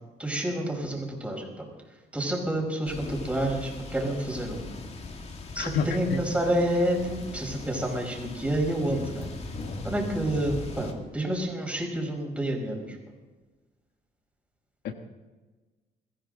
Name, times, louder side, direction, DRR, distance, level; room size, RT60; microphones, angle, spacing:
voice 1, 0.2-1.7 2.1-4.7 5.5-9.3 9.8-13.0, right 1 dB, 5° right, 0 dB, 5.1 m, -29 dB
sound 1, 2.9-10.9, left 3 dB, 40° left, 2.2 m, -39 dB
voice 2, 5.6-6.2 14.8-14.9, left 6 dB, 75° left, 6 dB, 1.5 m, -29 dB
22.5 x 15.0 x 3.9 m, 1.3 s
cardioid pair, 110°, 17 cm